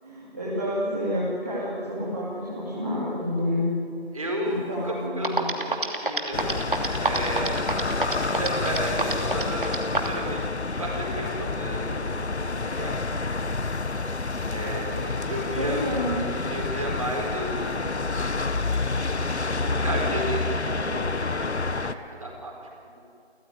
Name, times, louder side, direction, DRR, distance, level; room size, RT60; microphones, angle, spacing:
voice 1, 0.0-4.0 4.5-5.5 15.6-16.4, left 1 dB, 15° right, -10 dB, 2.8 m, -29 dB
voice 2, 4.1-6.7 7.0-7.7 8.3-10.5 10.8-13.5 14.5-15.8 16.5-18.1 19.6-22.5, right 1 dB, 30° right, -1 dB, 4.9 m, -33 dB
sound 1, 4.9-5.0 5.2-10.2, right 2 dB, 50° right, 2.9 m, -26 dB
sound 2, 6.3-21.9, left 3 dB, 90° left, 1.5 m, -28 dB
29.5 x 15.5 x 9.7 m, 2.5 s
figure-of-eight pair, 180°, 33 cm